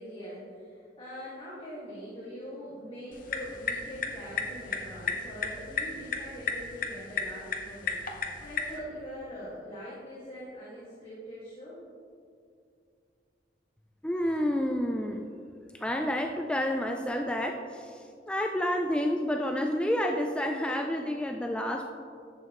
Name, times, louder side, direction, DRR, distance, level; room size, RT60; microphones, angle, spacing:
voice 1, 0.0-8.0 8.4-11.8, equal, 30° left, -9 dB, 1.8 m, -43 dB
sound 1, 3.1-8.8, left 5 dB, 50° left, 0.9 m, -35 dB
voice 2, 14.0-15.3 15.7-21.9, left 1 dB, 5° left, 3 dB, 0.3 m, -29 dB
11.0 x 7.8 x 3.0 m, 2.4 s
head